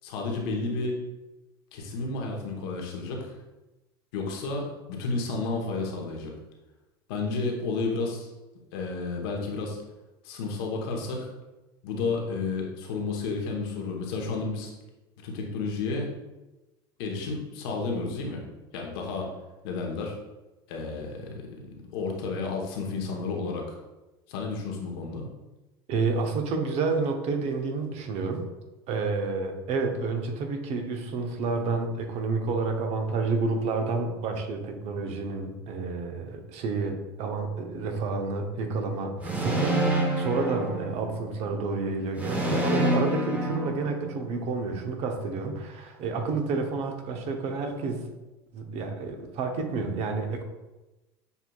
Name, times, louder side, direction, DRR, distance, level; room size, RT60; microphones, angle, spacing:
voice 1, 0.0-0.9 1.7-3.3 4.1-6.3 7.1-8.3 8.7-9.8 10.2-11.3 11.8-14.7 15.2-16.1 17.0-18.4 18.7-19.3 19.6-20.2 20.7-23.8 24.3-25.3, left 3 dB, 70° left, 0 dB, 1.1 m, -31 dB
voice 2, 25.9-28.5 28.9-48.0 48.5-50.4, right 4 dB, 55° right, 4 dB, 0.8 m, -30 dB
sound 1, 39.2-41.4 42.2-44.4, right 1 dB, 10° right, 0.9 m, -27 dB
6.8 x 2.8 x 2.3 m, 1.1 s
hypercardioid pair, 90°, 13 cm